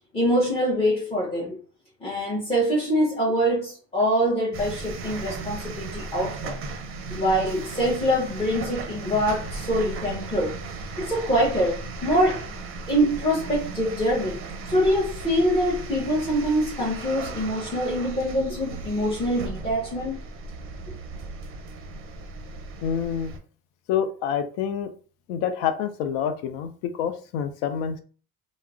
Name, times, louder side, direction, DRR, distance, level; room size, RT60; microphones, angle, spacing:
voice 1, 0.1-1.6 2.0-6.6 7.1-10.6 11.0-12.4 12.9-20.1, equal, 15° left, 0.7 m, -24 dB
sound 1, 4.5-23.4, right 3 dB, 30° right, 0.5 m, -36 dB
voice 2, 22.8-23.3 23.9-24.9 25.3-28.0, left 8 dB, 80° left, 0.5 m, -27 dB
2.2 x 2.0 x 3.5 m
supercardioid pair, 100°, 43 cm